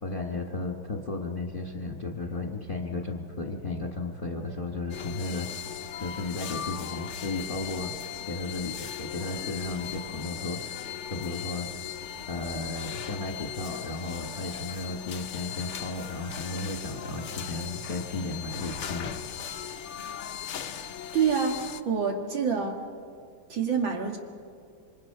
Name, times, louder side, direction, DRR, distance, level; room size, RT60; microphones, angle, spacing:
voice 1, 0.0-5.6 6.0-7.9 8.3-11.7 12.3-19.1 19.5-19.7, left 2 dB, 30° left, 2 dB, 1.4 m, -34 dB
sound 1, 4.9-21.8, left 9 dB, 70° left, 0.6 m, -38 dB
voice 2, 21.1-22.8 23.5-24.2, right 6 dB, 70° right, 2 dB, 2.4 m, -27 dB
27.0 x 25.0 x 5.6 m, 2.3 s
omnidirectional pair, 2.2 m